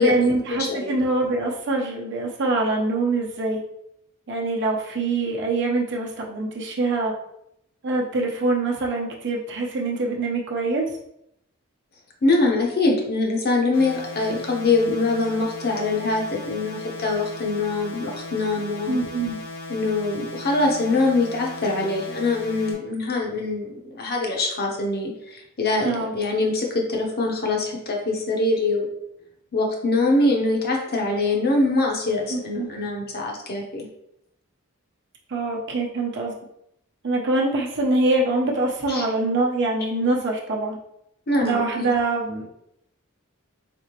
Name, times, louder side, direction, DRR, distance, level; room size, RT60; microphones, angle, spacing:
voice 1, 0.0-3.6 4.3-7.1 7.8-10.8 18.9-19.4 25.8-26.1 32.3-32.7 35.3-36.3 37.0-40.8 41.4-42.5, right 2 dB, 55° right, -1 dB, 0.9 m, -24 dB
voice 2, 0.6-0.9 12.2-19.0 19.7-28.9 29.5-33.9 38.9-39.0 41.3-41.9, left 2 dB, 45° left, 0 dB, 0.9 m, -23 dB
sound 1, 13.7-22.7, left 2 dB, 75° left, 1.2 m, -37 dB
4.1 x 3.5 x 2.9 m, 0.78 s
head